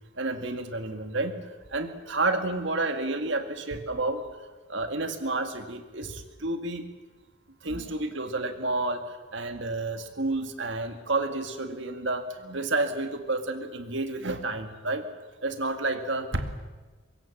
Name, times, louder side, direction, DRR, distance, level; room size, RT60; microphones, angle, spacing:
voice 1, 0.2-4.2 4.7-6.9 7.6-15.1 15.4-16.6, right 2 dB, 60° right, 7 dB, 2.1 m, -30 dB
24.0 x 22.0 x 7.4 m, 1.3 s
head